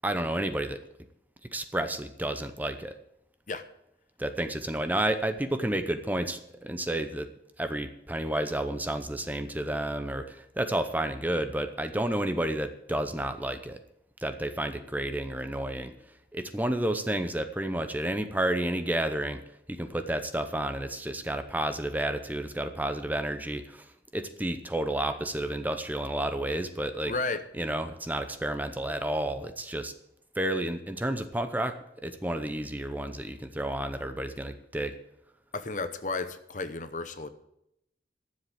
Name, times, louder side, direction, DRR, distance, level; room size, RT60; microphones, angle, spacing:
voice 1, 0.0-0.8 1.5-2.9 4.2-7.3 7.6-13.8 14.2-15.9 16.3-19.4 19.7-23.9 24.1-27.1 27.5-29.9 30.4-34.9, right 1 dB, 10° right, 8 dB, 0.7 m, -31 dB
voice 2, 27.0-27.4 35.5-37.3, left 3 dB, 45° left, 11 dB, 0.8 m, -33 dB
12.0 x 7.6 x 7.8 m, 0.80 s
head